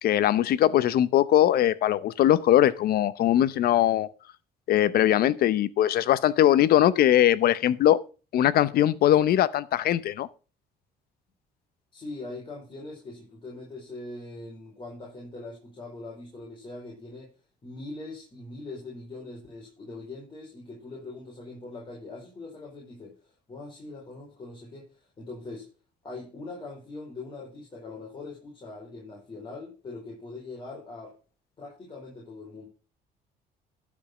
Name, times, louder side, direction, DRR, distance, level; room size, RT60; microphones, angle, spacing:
voice 1, 0.0-4.1 4.7-8.0 8.3-10.3, left 12 dB, 65° left, 0.8 m, -21 dB
voice 2, 11.9-17.3 17.6-25.7 26.0-31.2 31.6-32.7, left 2 dB, 30° left, 4.6 m, -42 dB
12.0 x 5.3 x 6.2 m
cardioid pair, 110°, 17 cm